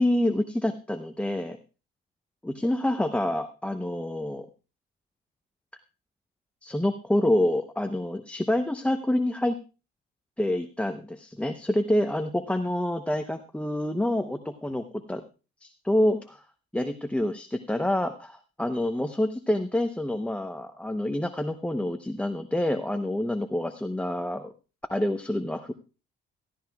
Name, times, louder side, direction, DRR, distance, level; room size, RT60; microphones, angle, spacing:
voice 1, 0.0-1.6 2.4-4.5 6.6-9.6 10.4-15.2 15.6-16.4 16.7-24.5 24.9-25.7, left 1 dB, 5° left, 6 dB, 0.8 m, -27 dB
16.5 x 14.5 x 2.3 m, 0.33 s
cardioid pair, 90°, 20 cm